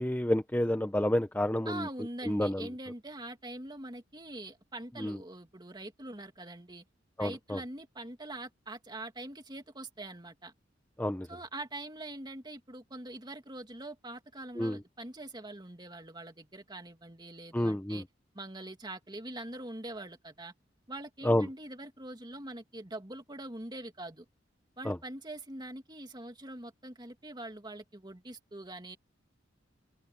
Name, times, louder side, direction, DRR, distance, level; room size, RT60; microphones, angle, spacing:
voice 1, 0.0-1.9 2.3-2.7 5.0-5.2 7.2-7.6 11.0-11.3 14.6-14.8 17.5-18.0 21.2-21.5 24.9-25.0, left 1 dB, 10° left, 0.7 m, -29 dB
voice 2, 1.7-6.8 7.2-10.5 11.3-18.0 18.3-20.5 20.9-24.2 24.8-29.0, right 1 dB, 25° right, 2.5 m, -43 dB
open air
head